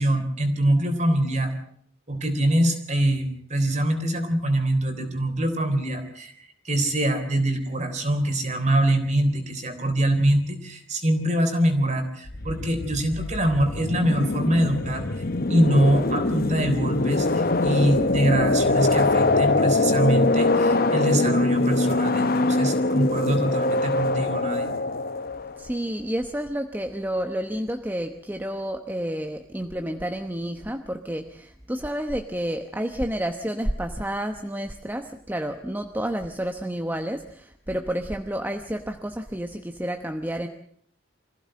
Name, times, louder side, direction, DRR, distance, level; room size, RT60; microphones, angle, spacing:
voice 1, 0.0-1.5 2.1-15.1 15.5-24.7, right 1 dB, 35° right, 7 dB, 3.6 m, -24 dB
sound 1, 12.3-25.7, left 2 dB, 45° left, 1.0 m, -23 dB
voice 2, 25.6-40.5, equal, 10° right, 6 dB, 1.0 m, -30 dB
25.5 x 15.5 x 7.6 m, 0.63 s
head